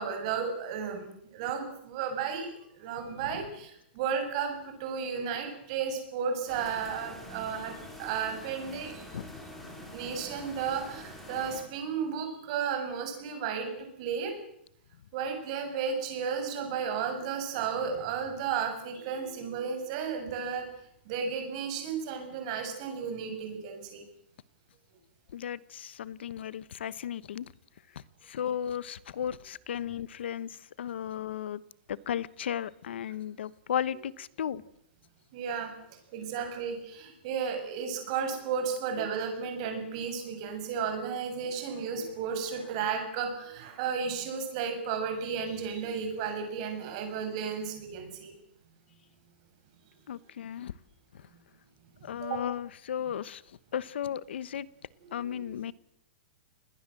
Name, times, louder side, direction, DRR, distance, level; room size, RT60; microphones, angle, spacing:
voice 1, 0.0-9.0 9.9-14.3 15.1-20.7 21.0-24.0 35.3-35.7 36.1-48.3 51.9-52.4 55.0-55.4, right 6 dB, 35° right, 5 dB, 6.7 m, -33 dB
sound 1, 6.5-11.6, equal, 5° left, 4.4 m, -46 dB
voice 2, 25.3-27.5 28.2-31.6 31.9-34.6 50.1-50.7 52.0-53.4 53.7-54.7 55.1-55.7, left 9 dB, 70° left, 19 dB, 1.1 m, -35 dB
29.5 x 21.0 x 7.7 m, 0.75 s
supercardioid pair, 175°, 6 cm